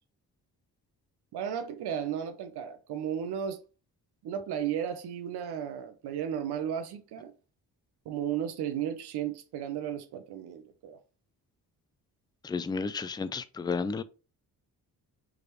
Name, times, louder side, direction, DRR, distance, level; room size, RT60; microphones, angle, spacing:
voice 1, 1.3-3.6 4.2-7.3 8.1-11.0, right 9 dB, 90° right, 0.7 m, -34 dB
voice 2, 12.4-14.0, left 4 dB, 10° left, 0.3 m, -32 dB
4.9 x 3.2 x 3.0 m
cardioid pair, 90°, 38 cm